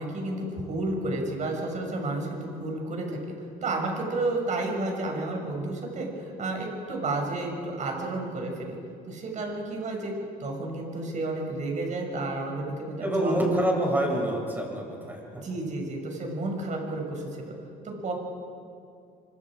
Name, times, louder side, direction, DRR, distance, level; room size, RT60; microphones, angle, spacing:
voice 1, 0.0-3.2 3.6-8.8 9.1-10.1 10.4-13.4 15.4-17.5 17.8-18.1, right 2 dB, 45° right, 1 dB, 6.2 m, -31 dB
voice 2, 13.0-15.4, right 1 dB, 10° right, -1 dB, 7.1 m, -26 dB
26.0 x 24.5 x 5.0 m, 2.5 s
cardioid pair, 110°, 17 cm